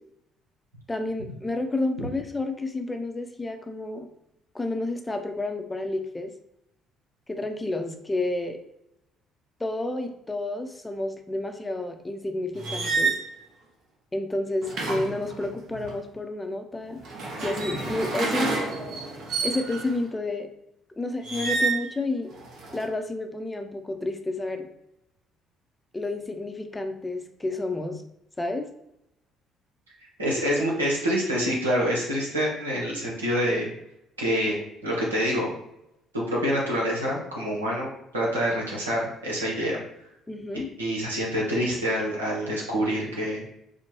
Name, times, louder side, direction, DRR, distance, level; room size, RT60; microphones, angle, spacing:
voice 1, 0.9-4.1 4.5-6.3 7.3-8.6 9.6-13.2 14.1-17.0 17.4-18.5 19.4-20.5 21.0-22.3 22.7-24.7 25.9-28.0 28.4-28.7 30.6-30.7 40.3-40.7, left 2 dB, 15° left, 5 dB, 0.5 m, -30 dB
sound 1, 12.5-13.2 14.6-15.9 16.9-20.0 21.2-21.9 22.3-22.9, right 3 dB, 60° right, 0.8 m, -29 dB
voice 2, 30.2-33.7 34.2-34.6 34.8-35.5 36.1-39.8 40.8-43.4, equal, 90° right, -4 dB, 0.9 m, -26 dB
4.4 x 2.1 x 3.0 m, 0.81 s
figure-of-eight pair, 50°, 0 cm